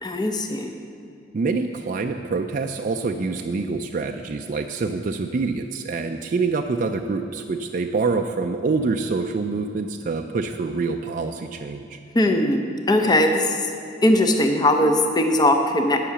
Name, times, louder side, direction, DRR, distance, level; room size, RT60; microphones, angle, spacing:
voice 1, 0.0-0.7 12.1-13.6 14.0-16.0, left 1 dB, 20° left, 4 dB, 0.6 m, -19 dB
voice 2, 1.3-12.0, right 4 dB, 45° right, 5 dB, 0.4 m, -26 dB
10.0 x 5.8 x 7.0 m, 2.5 s
head